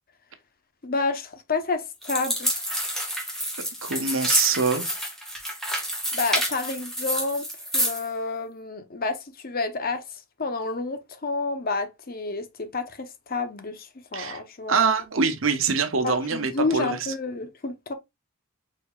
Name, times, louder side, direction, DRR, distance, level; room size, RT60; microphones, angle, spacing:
voice 1, 0.8-2.6 6.1-7.5 7.7-15.0 16.0-17.9, left 3 dB, 45° left, 0.8 m, -30 dB
sound 1, 2.0-8.1, equal, ahead, 1.7 m, -28 dB
voice 2, 3.8-4.9 14.1-14.4 14.7-17.0, right 5 dB, 65° right, 0.9 m, -24 dB
5.0 x 4.1 x 2.3 m
head